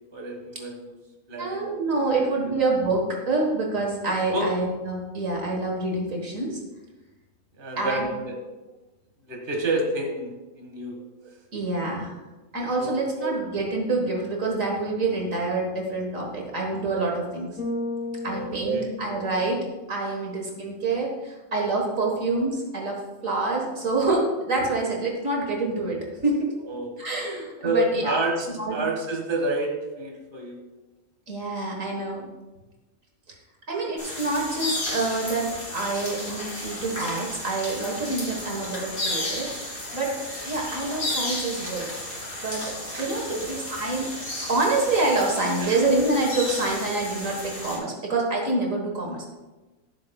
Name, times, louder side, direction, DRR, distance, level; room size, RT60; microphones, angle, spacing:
voice 1, 0.1-0.9 1.3-2.2 4.3-4.5 7.6-8.3 9.3-10.3 10.6-11.0 12.8-13.0 18.3-18.9 26.7-26.9 27.6-30.6 42.9-43.4 45.6-45.8, right 2 dB, 35° right, 0 dB, 1.8 m, -29 dB
voice 2, 1.4-6.6 7.8-8.1 11.5-12.1 12.5-17.6 18.2-26.5 27.0-28.2 28.5-28.8 31.3-32.3 33.7-39.5 39.9-41.9 42.4-44.1 44.5-49.3, right 2 dB, 65° right, 0 dB, 1.8 m, -27 dB
Bass guitar, 17.6-19.9, left 2 dB, 75° left, 3.9 m, -34 dB
sound 1, 34.0-47.8, left 1 dB, 50° left, 3.2 m, -33 dB
14.5 x 7.8 x 2.3 m, 1.1 s
omnidirectional pair, 1.5 m